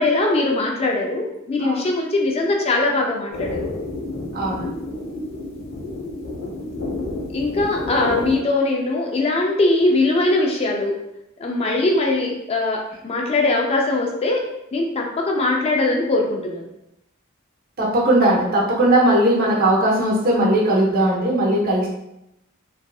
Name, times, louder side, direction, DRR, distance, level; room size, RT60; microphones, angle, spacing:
voice 1, 0.0-3.6 7.3-10.9 11.4-14.4 14.7-16.7, left 2 dB, 30° left, 0 dB, 0.3 m, -21 dB
sound 1, 3.3-8.4, left 2 dB, 65° left, 0.6 m, -30 dB
voice 2, 4.3-4.7 17.8-21.9, right 1 dB, 45° right, -4 dB, 0.7 m, -18 dB
2.6 x 2.4 x 2.3 m, 0.85 s
head